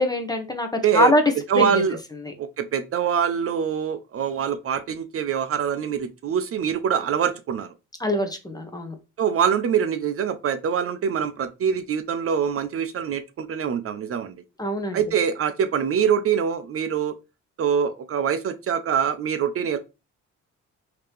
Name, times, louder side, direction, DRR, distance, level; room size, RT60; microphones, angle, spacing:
voice 1, 0.0-1.8 2.2-2.3 8.0-8.9 14.6-15.2, left 1 dB, 15° left, 6 dB, 0.8 m, -23 dB
voice 2, 1.5-2.0 2.4-7.7 9.2-14.4 14.9-17.1 17.6-19.8, right 7 dB, 50° right, 9 dB, 0.5 m, -24 dB
3.2 x 2.8 x 3.3 m, 0.27 s
cardioid pair, 90°, 30 cm